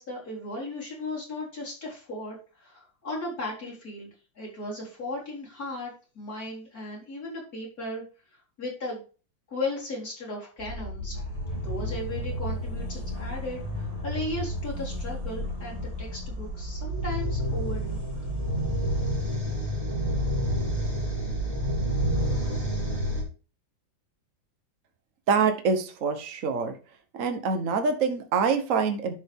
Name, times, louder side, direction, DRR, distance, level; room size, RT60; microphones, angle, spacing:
voice 1, 0.0-4.1 4.4-8.0 8.6-9.0 9.5-11.2 11.6-18.0, left 2 dB, 45° left, -4 dB, 4.7 m, -36 dB
sound 1, 10.6-23.2, equal, 20° right, 3.0 m, -30 dB
voice 2, 25.3-26.8 27.2-29.1, right 5 dB, 50° right, 7 dB, 1.3 m, -25 dB
11.5 x 5.3 x 3.6 m, 0.35 s
omnidirectional pair, 2.1 m